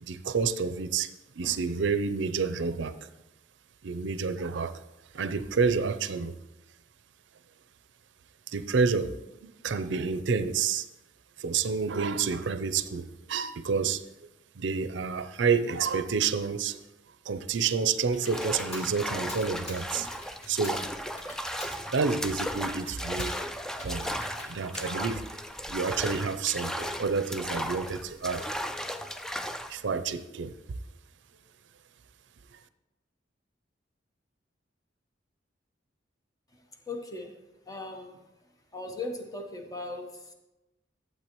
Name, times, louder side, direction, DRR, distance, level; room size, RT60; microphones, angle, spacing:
voice 1, 0.0-3.0 3.8-4.8 5.1-6.3 8.5-10.9 11.4-14.0 14.6-16.8 17.3-20.1 20.5-20.8 21.9-23.4 23.8-24.1 24.5-25.3 25.7-28.5 29.7-30.6, right 5 dB, 70° right, 0.5 m, -29 dB
Computer keyboard, 17.3-25.9, left 1 dB, 35° left, 1.6 m, -48 dB
sound 1, 18.2-29.8, equal, 5° left, 0.3 m, -36 dB
voice 2, 36.9-37.3 37.7-38.2 38.7-40.3, left 2 dB, 20° left, 1.0 m, -38 dB
12.0 x 7.8 x 3.0 m
head